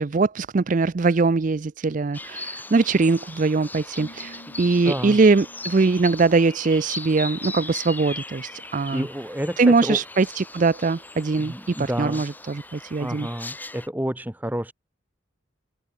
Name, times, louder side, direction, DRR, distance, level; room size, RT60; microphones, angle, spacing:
voice 1, 0.0-9.1 9.6-13.3, right 3 dB, 40° right, 0.4 m, -22 dB
sound 1, 2.1-13.9, left 2 dB, 10° left, 6.6 m, -38 dB
Keyboard (musical), 4.0-7.6, equal, 60° left, 5.5 m, -49 dB
voice 2, 4.8-5.2 8.9-10.0 11.4-12.2 13.0-14.7, equal, 10° right, 1.0 m, -29 dB
head